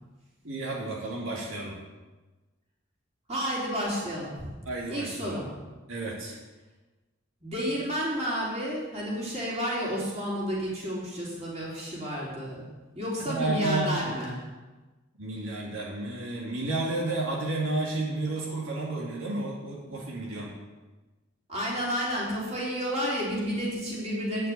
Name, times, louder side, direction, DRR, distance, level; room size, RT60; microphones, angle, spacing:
voice 1, 0.4-1.8 4.7-5.4 5.9-6.4 13.2-14.1 15.2-20.5, right 2 dB, 80° right, -4 dB, 2.4 m, -31 dB
voice 2, 3.3-4.5 4.9-5.5 7.4-12.6 12.9-14.3 21.5-24.5, equal, 30° right, -6 dB, 3.9 m, -31 dB
9.9 x 6.3 x 8.3 m, 1.2 s
head